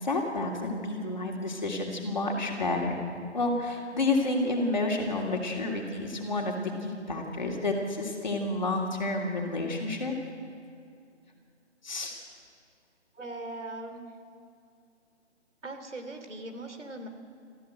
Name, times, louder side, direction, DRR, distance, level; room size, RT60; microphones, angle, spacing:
voice 1, 0.0-3.0 3.3-10.1 11.8-12.1, left 2 dB, 40° left, 0 dB, 2.9 m, -30 dB
voice 2, 13.1-14.1 15.6-17.1, right 2 dB, 85° right, 6 dB, 3.1 m, -40 dB
24.5 x 14.5 x 7.9 m, 2.4 s
hypercardioid pair, 180°, 35 cm